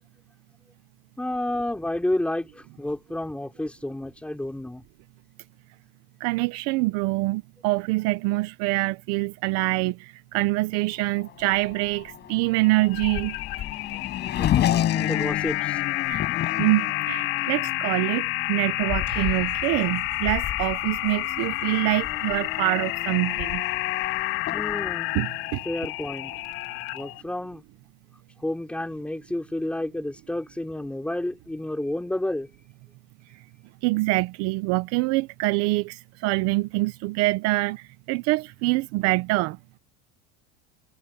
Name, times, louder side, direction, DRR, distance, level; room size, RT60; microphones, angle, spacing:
voice 1, 1.2-4.8 14.4-15.8 17.4-17.5 24.5-25.1 25.7-26.3 26.9-27.6 28.4-32.5, left 1 dB, 5° left, 5.6 m, -30 dB
voice 2, 6.2-13.4 16.1-16.2 16.6-23.6 25.1-25.6 33.8-39.6, right 21 dB, 60° right, 0.9 m, -25 dB
Race car auto racing / Accelerating revving vroom, 11.0-27.2, left 11 dB, 35° left, 6.8 m, -32 dB
sound 1, 12.6-27.2, left 23 dB, 75° left, 3.0 m, -30 dB
sound 2, 19.1-24.7, right 12 dB, 35° right, 7.0 m, -46 dB
cardioid pair, 155°, 29 cm